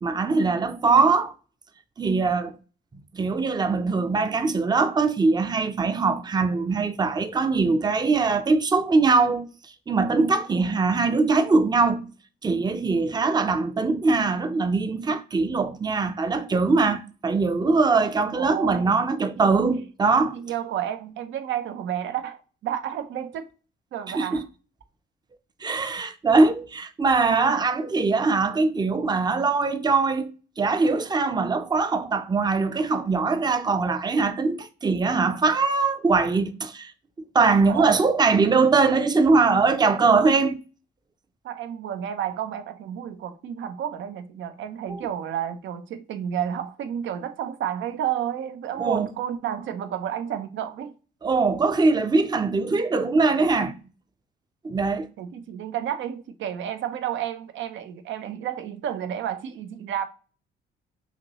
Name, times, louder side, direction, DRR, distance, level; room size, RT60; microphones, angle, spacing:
voice 1, 0.0-1.3 2.0-2.5 3.1-9.5 9.9-12.1 12.4-20.4 24.1-24.4 25.6-30.3 30.6-36.9 37.3-40.6 44.9-45.0 48.8-49.1 51.2-53.8 54.6-55.1, right 4 dB, 20° right, 0.5 m, -22 dB
voice 2, 18.2-19.0 20.3-23.4 23.9-24.5 37.7-38.0 41.4-50.9 55.2-60.1, right 10 dB, 70° right, 0.6 m, -31 dB
5.7 x 2.7 x 3.0 m
cardioid pair, 85°, 20 cm